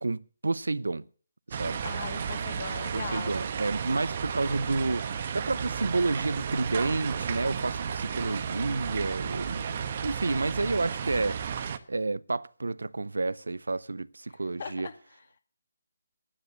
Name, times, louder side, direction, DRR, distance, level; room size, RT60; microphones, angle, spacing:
voice 1, 0.0-1.0 1.5-1.8 2.9-5.0 5.3-9.6 10.0-11.4 11.9-14.9, right 3 dB, 85° right, 0.6 m, -30 dB
sound 1, 1.5-11.8, right 7 dB, 40° right, 1.2 m, -33 dB
voice 2, 1.8-3.4 14.6-14.9, left 6 dB, 50° left, 2.2 m, -39 dB
12.0 x 9.7 x 7.0 m
figure-of-eight pair, 155°, 0 cm